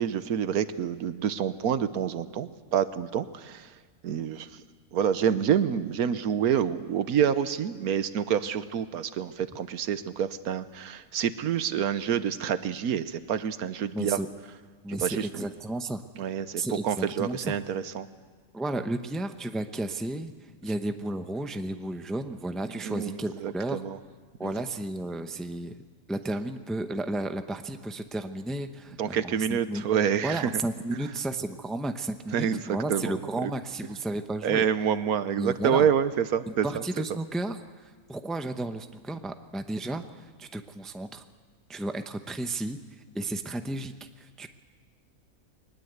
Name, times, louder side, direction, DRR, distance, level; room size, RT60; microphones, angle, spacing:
voice 1, 0.0-3.7 4.0-4.6 4.9-14.2 14.9-15.5 16.2-18.1 22.8-24.0 24.4-24.5 29.0-30.5 32.3-32.6 32.9-33.5 34.4-36.7, right 8 dB, 85° right, 13 dB, 1.4 m, -27 dB
voice 2, 13.9-14.3 14.8-16.0 16.6-17.6 18.5-20.3 20.6-23.8 24.4-25.8 26.1-29.8 30.2-34.6 35.4-35.9 36.5-37.6 38.1-40.0 40.4-41.2 41.7-42.8 43.1-44.5, right 2 dB, ahead, 8 dB, 0.6 m, -33 dB
22.0 x 20.0 x 8.1 m, 1.5 s
omnidirectional pair, 1.5 m